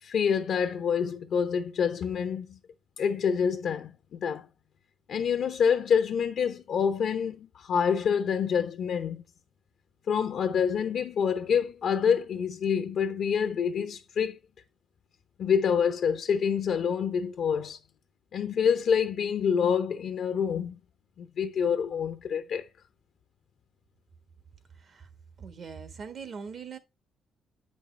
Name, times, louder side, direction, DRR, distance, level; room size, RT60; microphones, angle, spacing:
voice 1, 0.0-2.6 3.0-4.5 5.1-9.2 10.1-14.4 15.4-17.8 18.3-20.8 21.2-22.7, left 7 dB, 65° left, 0.7 m, -27 dB
voice 2, 24.8-25.1 25.4-26.8, right 6 dB, 55° right, 1.3 m, -41 dB
8.2 x 5.4 x 3.3 m
cardioid pair, 90°, 0 cm